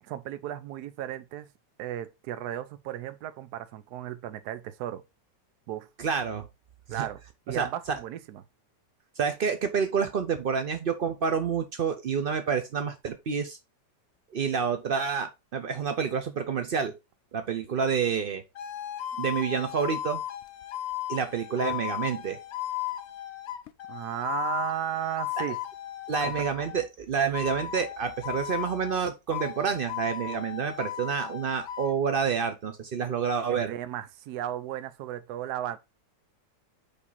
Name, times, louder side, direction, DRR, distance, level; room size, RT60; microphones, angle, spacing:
voice 1, 0.0-1.5 1.8-5.0 5.7-5.9 6.9-7.2 7.5-8.4 23.9-25.6 26.2-26.5 33.5-35.8, right 12 dB, 70° right, 1.2 m, -35 dB
voice 2, 6.0-6.5 6.9-7.1 7.5-8.0 9.2-13.6 14.3-16.9 17.3-18.4 19.2-20.2 21.1-22.4 26.1-33.7, right 6 dB, 85° right, 0.4 m, -28 dB
sound 1, 18.6-26.9 27.3-29.0 29.3-31.9, left 12 dB, 80° left, 0.6 m, -36 dB
5.3 x 5.1 x 4.0 m
omnidirectional pair, 1.9 m